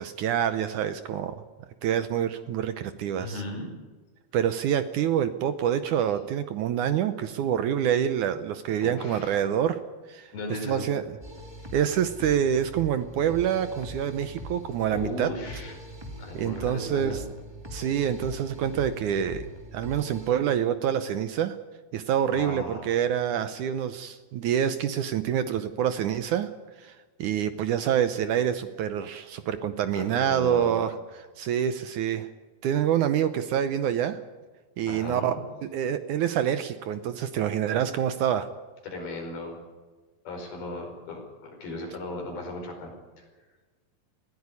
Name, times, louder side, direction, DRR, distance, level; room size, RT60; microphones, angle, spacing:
voice 1, 0.0-1.4 1.8-3.4 4.3-9.8 10.1-10.3 10.6-11.0 11.7-15.3 16.3-17.2 17.7-19.5 19.7-21.6 21.9-26.5 26.8-32.3 32.6-34.2 34.8-35.3 35.7-38.5, right 9 dB, 70° right, 11 dB, 2.0 m, -26 dB
voice 2, 3.2-3.7 8.8-9.4 10.3-10.9 14.9-15.7 16.2-17.2 22.3-23.0 29.9-30.7 34.9-35.4 38.8-39.6 40.3-43.2, left 2 dB, 80° left, 2 dB, 6.9 m, -36 dB
sound 1, 11.2-20.3, equal, 10° right, 1.3 m, -42 dB
20.5 x 16.0 x 9.7 m, 1.3 s
omnidirectional pair, 4.3 m